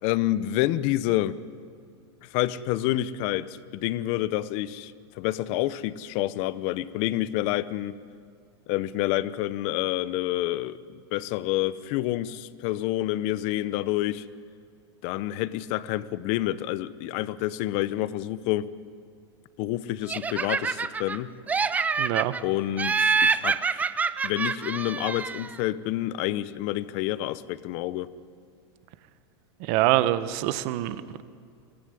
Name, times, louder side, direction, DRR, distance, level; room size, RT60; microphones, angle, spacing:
voice 1, 0.0-1.4 2.2-8.0 8.7-14.2 15.0-18.7 19.6-21.3 22.4-23.8 24.2-28.1, left 14 dB, 45° left, 17 dB, 0.8 m, -28 dB
Laughter, 20.1-21.2 21.5-22.4 22.8-25.6, right 5 dB, 10° right, 0.5 m, -26 dB
voice 2, 22.0-22.3 29.6-31.2, right 15 dB, 45° right, 14 dB, 1.1 m, -25 dB
23.5 x 17.5 x 9.7 m, 2.3 s
supercardioid pair, 150°, 14 cm